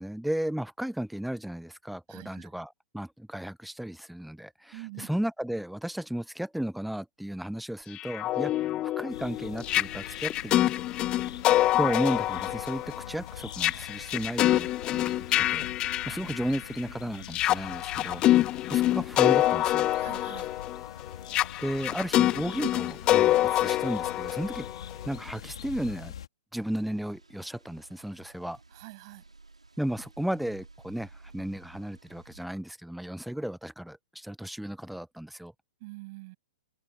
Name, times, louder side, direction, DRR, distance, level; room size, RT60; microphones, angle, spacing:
voice 1, 0.0-10.7 11.8-15.7 16.1-18.2 18.7-19.9 21.6-24.7 25.1-26.1 26.5-28.6 29.8-35.5, right 1 dB, ahead, 0.8 m, -34 dB
voice 2, 2.1-2.5 4.7-5.2 19.9-20.5 28.7-29.2 35.8-36.4, right 23 dB, 40° right, 7.6 m, -45 dB
sound 1, 7.9-16.8 17.2-25.1, left 14 dB, 25° left, 0.6 m, -26 dB
sound 2, 9.1-26.3, left 9 dB, 60° left, 2.9 m, -45 dB
sound 3, 26.6-32.5, right 3 dB, 80° right, 5.9 m, -54 dB
open air
figure-of-eight pair, 115°, 3 cm